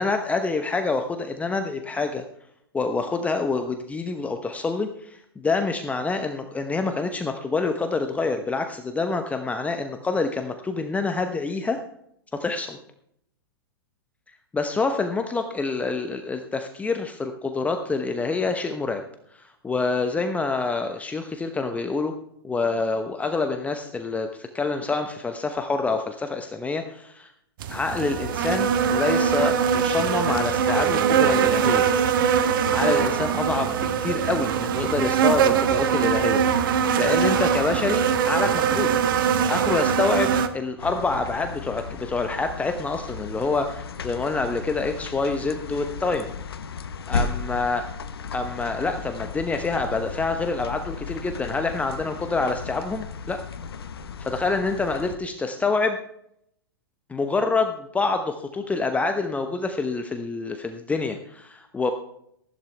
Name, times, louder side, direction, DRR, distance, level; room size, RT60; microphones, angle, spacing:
voice 1, 0.0-2.2 2.7-11.8 12.3-12.8 14.5-19.0 19.3-22.1 22.4-27.3 27.7-31.9 32.7-36.4 37.0-38.9 39.5-46.3 47.1-47.8 48.3-53.4 54.3-56.0 57.1-61.9, left 3 dB, 10° left, 6 dB, 0.9 m, -27 dB
sound 1, 27.6-40.5, right 7 dB, 60° right, 1.2 m, -22 dB
sound 2, 40.8-55.2, left 5 dB, 75° left, 1.1 m, -35 dB
14.5 x 11.5 x 3.4 m, 0.73 s
hypercardioid pair, 115°, 13 cm